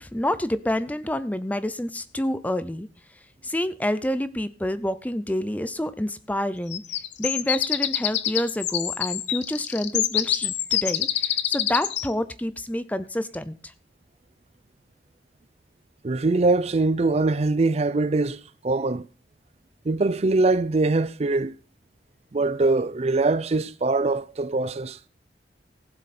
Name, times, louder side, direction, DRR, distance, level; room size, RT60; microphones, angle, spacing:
voice 1, 0.0-2.9 3.4-6.8 7.2-13.5, left 1 dB, 10° left, 0.5 m, -28 dB
sound 1, 6.7-12.1, left 12 dB, 75° left, 0.8 m, -26 dB
voice 2, 16.0-19.1 19.9-21.5 22.3-25.0, right 3 dB, 35° right, 0.5 m, -23 dB
15.5 x 7.7 x 4.3 m
head